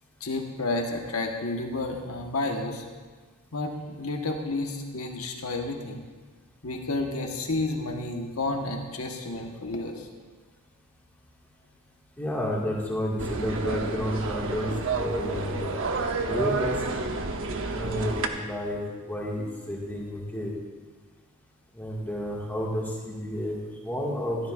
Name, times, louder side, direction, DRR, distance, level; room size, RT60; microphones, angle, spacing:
voice 1, 0.2-2.8 3.5-6.0 6.6-10.1, left 2 dB, 75° left, 2 dB, 1.4 m, -31 dB
voice 2, 12.2-15.7 16.3-16.8 17.7-20.5 21.8-23.6 23.8-24.4, equal, 10° left, -4 dB, 2.0 m, -31 dB
sound 1, 13.2-18.3, right 3 dB, 60° right, 0.9 m, -30 dB
15.5 x 12.5 x 2.5 m, 1.4 s
head